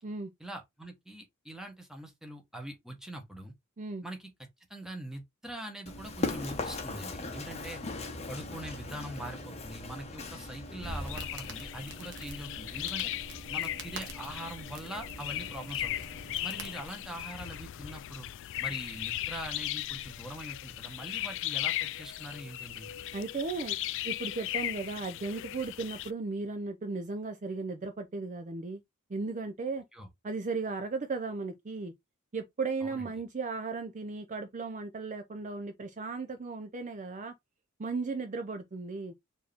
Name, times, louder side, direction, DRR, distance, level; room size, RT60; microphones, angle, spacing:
voice 1, 0.4-3.5 4.0-4.3 4.7-7.8 8.3-13.1 13.5-15.9 16.4-18.3 18.6-22.9 29.9-30.1 32.8-33.1, right 1 dB, ahead, 1.1 m, -43 dB
Run, 5.9-16.4, left 2 dB, 30° left, 0.8 m, -41 dB
Crackle, 10.5-17.2, right 2 dB, 55° right, 1.2 m, -46 dB
sound 1, 10.8-26.1, left 14 dB, 55° left, 0.3 m, -37 dB
voice 2, 23.1-23.8 24.0-28.8 29.1-29.8 30.2-31.9 32.3-37.3 37.8-39.1, right 4 dB, 35° right, 0.5 m, -36 dB
4.5 x 2.8 x 3.4 m
head